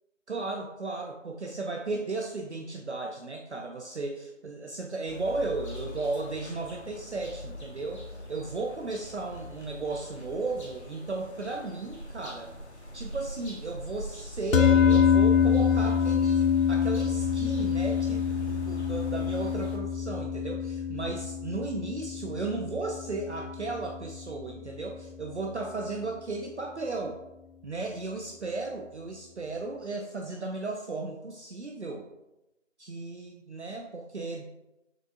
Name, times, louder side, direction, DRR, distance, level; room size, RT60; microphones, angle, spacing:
voice 1, 0.3-12.5 12.9-27.2 27.6-32.1 32.8-34.4, right 3 dB, 60° right, 2 dB, 0.5 m, -35 dB
sound 1, 5.1-19.8, equal, 60° left, 0.8 m, -42 dB
sound 2, 14.5-25.0, left 7 dB, 90° left, 0.5 m, -26 dB
6.4 x 2.6 x 2.5 m, 0.94 s
figure-of-eight pair, 175°, 38 cm